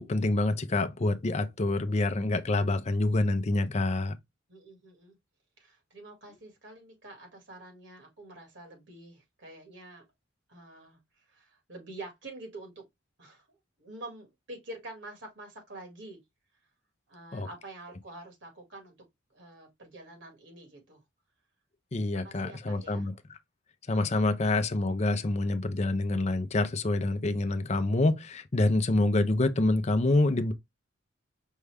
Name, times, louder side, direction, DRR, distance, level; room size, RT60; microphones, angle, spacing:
voice 1, 0.0-4.1 17.3-17.5 21.9-23.1 23.9-30.5, left 2 dB, 35° left, 0.5 m, -27 dB
voice 2, 4.5-5.2 5.6-10.1 10.5-12.8 13.2-16.2 17.1-19.0 19.3-21.0 22.2-23.1, right 2 dB, 65° right, 1.9 m, -47 dB
5.4 x 2.3 x 3.3 m
head